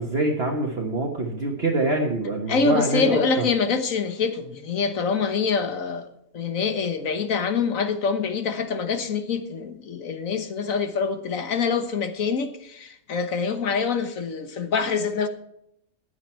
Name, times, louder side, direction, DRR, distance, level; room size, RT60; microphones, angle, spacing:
voice 1, 0.0-3.4, right 2 dB, 45° right, 1.6 m, -25 dB
voice 2, 2.5-6.1 6.3-15.3, left 5 dB, 65° left, 1.6 m, -25 dB
15.0 x 9.5 x 4.5 m
omnidirectional pair, 1.5 m